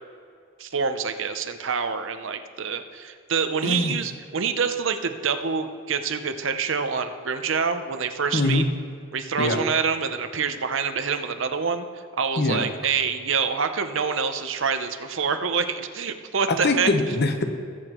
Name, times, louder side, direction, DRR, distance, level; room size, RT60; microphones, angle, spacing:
voice 1, 0.6-8.6 9.1-11.9 12.2-16.9, right 6 dB, 60° right, 8 dB, 0.7 m, -26 dB
voice 2, 3.6-4.0 8.3-8.6 9.4-9.6 12.4-12.7 16.6-17.6, left 2 dB, 50° left, 5 dB, 1.0 m, -23 dB
20.0 x 8.1 x 3.0 m, 2.3 s
head